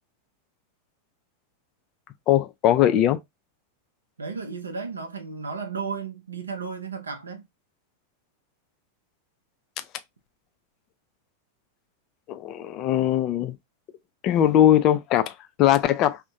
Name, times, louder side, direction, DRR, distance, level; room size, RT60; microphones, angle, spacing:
voice 1, 2.3-3.2 12.3-13.6 14.2-16.2, left 12 dB, 35° left, 0.3 m, -20 dB
voice 2, 4.2-7.5, right 5 dB, 75° right, 0.5 m, -34 dB
2.5 x 2.1 x 2.6 m
figure-of-eight pair, 90°, 0 cm